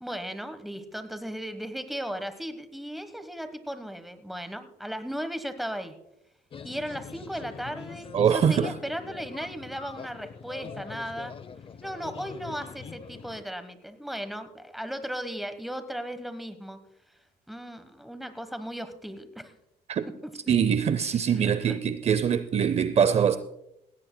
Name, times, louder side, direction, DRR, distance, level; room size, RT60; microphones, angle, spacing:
voice 1, 0.0-5.9 6.6-11.3 11.8-16.8 17.5-19.5 21.4-21.8, equal, ahead, 1.2 m, -36 dB
sound 1, 6.5-13.4, left 6 dB, 30° left, 0.6 m, -43 dB
voice 2, 8.1-8.8 19.9-20.1 20.5-23.4, right 8 dB, 40° right, 0.6 m, -23 dB
17.5 x 16.5 x 2.2 m
cardioid pair, 110°, 17 cm